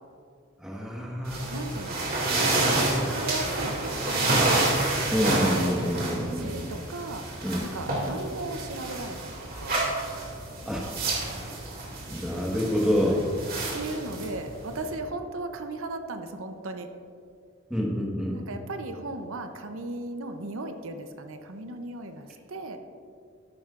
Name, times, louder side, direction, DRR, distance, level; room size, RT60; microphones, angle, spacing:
voice 1, 0.6-1.4 2.3-2.9 5.1-6.5 7.4-7.7 10.6-10.9 12.1-13.5 17.7-18.3, equal, 5° right, -3 dB, 1.4 m, -27 dB
sound 1, 1.3-14.9, right 2 dB, 45° right, 2.4 m, -29 dB
voice 2, 1.5-2.3 3.0-4.4 5.6-7.2 7.6-9.9 13.0-13.2 13.7-16.9 18.3-22.8, right 2 dB, 75° right, 7 dB, 0.7 m, -37 dB
13.5 x 11.5 x 2.5 m, 2.4 s
head